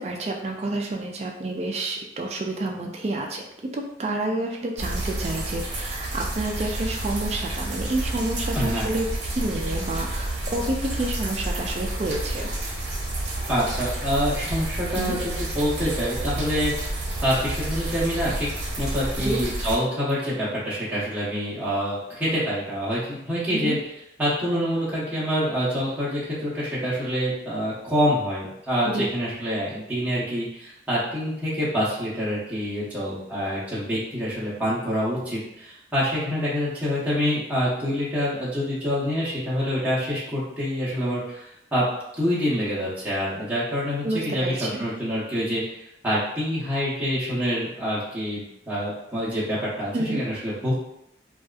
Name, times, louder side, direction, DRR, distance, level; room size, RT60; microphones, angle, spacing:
voice 1, 0.0-3.4 3.7-12.5 14.9-15.2 19.2-19.4 23.6-23.8 28.8-29.1 44.0-44.8 49.9-50.2, right 2 dB, 35° right, 2 dB, 0.3 m, -29 dB
sound 1, 4.8-19.8, right 1 dB, 80° right, 0.6 m, -30 dB
voice 2, 8.5-8.9 13.5-18.5 18.8-23.8 24.2-41.8 42.2-50.7, equal, 10° right, -10 dB, 0.7 m, -26 dB
2.6 x 2.4 x 2.3 m, 0.81 s
head